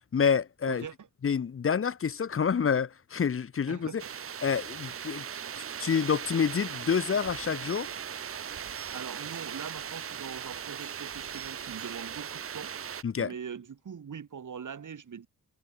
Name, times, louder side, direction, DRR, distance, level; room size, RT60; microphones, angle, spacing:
voice 1, 0.1-0.9 1.2-4.0 4.4-5.2 5.8-8.0 13.0-13.3, left 6 dB, 40° left, 0.9 m, -28 dB
voice 2, 0.7-1.1 3.7-4.1 8.7-12.7 13.1-15.3, right 7 dB, 60° right, 6.1 m, -42 dB
sound 1, 4.0-13.0, right 8 dB, 40° right, 0.6 m, -39 dB
wide cardioid pair, 140°, 35 cm